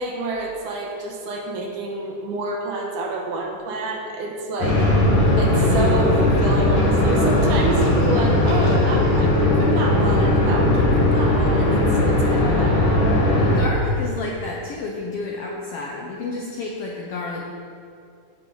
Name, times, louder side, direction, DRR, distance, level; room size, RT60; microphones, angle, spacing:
voice 1, 0.0-4.8 5.4-12.8, right 3 dB, 80° right, 1 dB, 2.7 m, -28 dB
sound 1, 4.6-13.6, left 1 dB, 50° left, 2.5 m, -18 dB
voice 2, 13.3-17.6, left 3 dB, 75° left, -1 dB, 1.4 m, -30 dB
16.0 x 5.5 x 3.9 m, 2.5 s
omnidirectional pair, 3.6 m